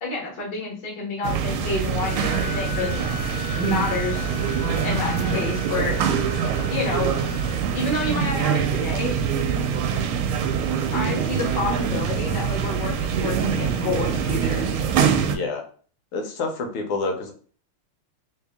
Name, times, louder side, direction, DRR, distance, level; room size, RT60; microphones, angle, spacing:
voice 1, 0.0-3.0 3.6-4.3 4.8-6.0 6.7-7.1 7.7-9.1 10.9-14.7, left 3 dB, 35° left, -2 dB, 1.0 m, -29 dB
sound 1, 1.2-15.4, right 7 dB, 80° right, 1.4 m, -24 dB
sound 2, 1.9-7.6, left 10 dB, 60° left, 1.4 m, -37 dB
voice 2, 15.3-15.6 16.1-17.3, left 3 dB, 85° left, 3 dB, 1.6 m, -28 dB
3.4 x 2.7 x 3.4 m, 0.43 s
omnidirectional pair, 2.4 m